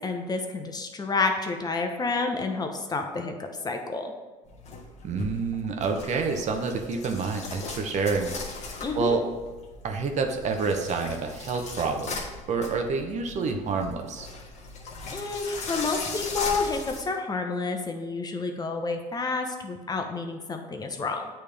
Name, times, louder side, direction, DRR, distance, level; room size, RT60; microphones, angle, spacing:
voice 1, 0.0-4.1 8.8-9.2 15.1-21.3, left 3 dB, 25° left, 4 dB, 0.8 m, -29 dB
sound 1, 4.5-17.0, left 3 dB, 45° left, 1.3 m, -38 dB
voice 2, 5.0-8.3 8.9-9.2 9.8-12.2 12.5-14.3, right 4 dB, 45° right, 4 dB, 0.9 m, -28 dB
8.6 x 3.4 x 3.3 m, 1.3 s
hypercardioid pair, 80°, 16 cm